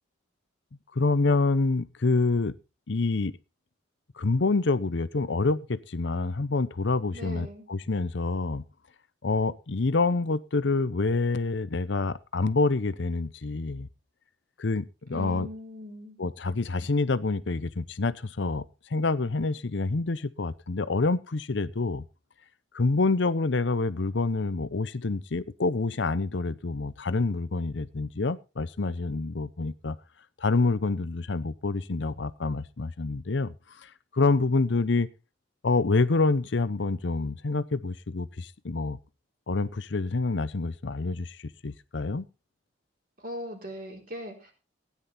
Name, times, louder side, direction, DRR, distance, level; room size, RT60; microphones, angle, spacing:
voice 1, 1.0-2.5 2.9-3.4 4.2-8.6 9.2-13.9 14.6-15.5 16.2-18.7 18.9-22.0 22.7-30.0 30.4-33.5 33.8-35.1 35.6-39.0 39.5-41.4 41.6-42.2, left 3 dB, 70° left, 0.7 m, -27 dB
voice 2, 7.1-7.7 15.1-16.2 43.2-44.5, left 1 dB, 45° right, 4.0 m, -39 dB
16.0 x 9.8 x 4.2 m
head